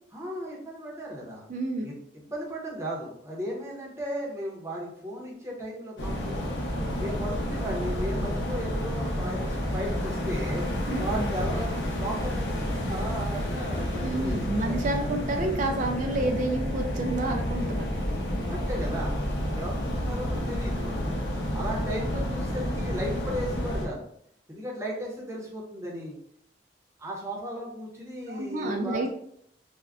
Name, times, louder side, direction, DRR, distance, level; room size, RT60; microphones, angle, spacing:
voice 1, 0.1-1.5 1.8-1.9 2.3-6.5 7.0-10.7 11.0-14.8 18.2-19.1 19.5-21.2 21.5-24.1 24.5-26.1 27.0-29.0, equal, 15° right, -3 dB, 0.7 m, -35 dB
voice 2, 1.5-1.9 10.9-11.3 14.0-17.8 28.3-29.1, right 2 dB, 45° right, 3 dB, 0.3 m, -29 dB
sound 1, 6.0-23.8, equal, 85° left, 0.7 m, -30 dB
3.4 x 2.1 x 2.4 m, 0.69 s
head